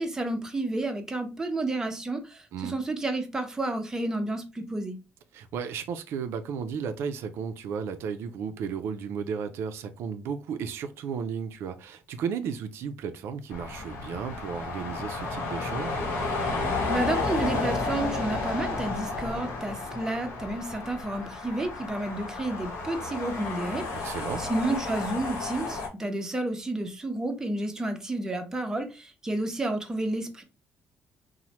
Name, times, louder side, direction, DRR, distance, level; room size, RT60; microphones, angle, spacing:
voice 1, 0.0-5.0 16.9-30.4, right 2 dB, 15° right, 0.5 m, -31 dB
voice 2, 5.3-16.1 23.9-24.4, right 6 dB, 75° right, 0.3 m, -34 dB
sound 1, 13.5-25.9, left 3 dB, 75° left, 0.8 m, -32 dB
3.0 x 2.0 x 2.8 m
cardioid pair, 145°, 4 cm